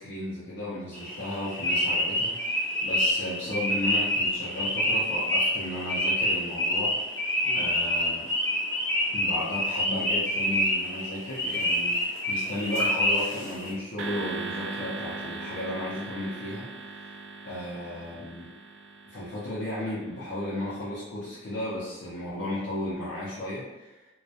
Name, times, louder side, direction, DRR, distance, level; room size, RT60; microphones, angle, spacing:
voice 1, 0.0-7.0 7.5-8.3 9.1-17.1 17.4-18.5 19.1-24.1, left 1 dB, 65° left, -9 dB, 0.5 m, -34 dB
sound 1, 0.9-13.7, equal, 15° left, 0.4 m, -27 dB
sound 2, 14.0-20.4, right 3 dB, 75° right, 0.3 m, -39 dB
2.2 x 2.0 x 2.7 m, 1.1 s
head